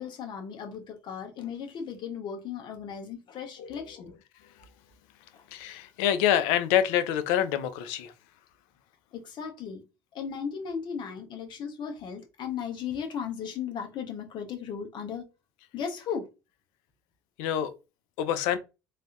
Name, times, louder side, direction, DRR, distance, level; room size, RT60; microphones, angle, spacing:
voice 1, 0.0-4.2 5.3-5.5 9.1-9.9 10.1-15.3 15.7-16.3, left 7 dB, 50° left, 1.0 m, -36 dB
voice 2, 5.5-8.1 17.4-17.7 18.2-18.6, left 10 dB, 75° left, 0.5 m, -26 dB
3.3 x 2.8 x 2.5 m
hypercardioid pair, 80°, 10 cm